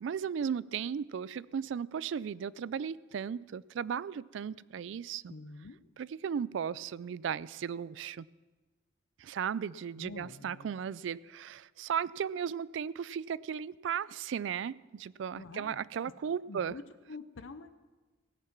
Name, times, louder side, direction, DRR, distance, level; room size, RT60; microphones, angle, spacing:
voice 1, 0.0-5.3 6.0-8.3 9.2-16.7, right 7 dB, 70° right, 0.3 m, -36 dB
voice 2, 5.3-5.8 10.0-10.7 15.4-15.8 16.5-16.8 17.1-17.8, left 3 dB, 75° left, 0.6 m, -46 dB
17.0 x 9.4 x 5.9 m
head